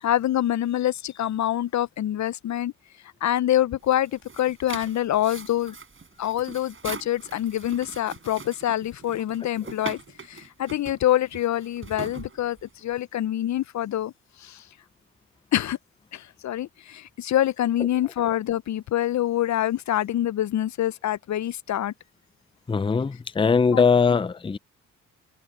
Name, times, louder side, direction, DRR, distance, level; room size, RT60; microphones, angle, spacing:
voice 1, 0.0-2.7 3.2-5.7 6.2-10.0 10.3-14.1 14.4-14.6 15.5-15.8 16.1-21.9 23.7-23.9, left 12 dB, 55° left, 0.6 m, -25 dB
sound 1, 3.8-12.9, right 5 dB, 35° right, 4.9 m, -41 dB
voice 2, 22.7-24.6, left 5 dB, 15° left, 0.6 m, -21 dB
supercardioid pair, 65°, 34 cm